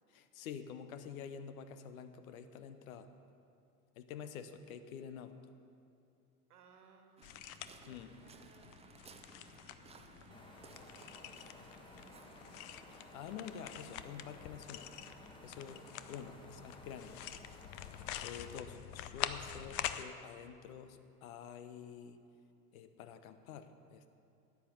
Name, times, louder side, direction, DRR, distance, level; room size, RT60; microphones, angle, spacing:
voice 1, 0.1-3.1 4.0-5.4 7.9-8.1 12.9-15.0 15.4-17.2 18.2-22.2 22.7-24.1, left 7 dB, 60° left, 10 dB, 0.9 m, -48 dB
voice 2, 6.5-7.4 7.8-12.6, right 4 dB, 70° right, 4 dB, 1.6 m, -66 dB
sound 1, 7.2-20.0, left 12 dB, 40° left, 0.6 m, -46 dB
Waves surf, 7.2-15.9, right 4 dB, 15° right, 0.7 m, -60 dB
sound 2, 10.3-18.6, left 1 dB, 10° left, 1.3 m, -57 dB
12.5 x 9.6 x 5.5 m, 2.5 s
figure-of-eight pair, 80°, 47 cm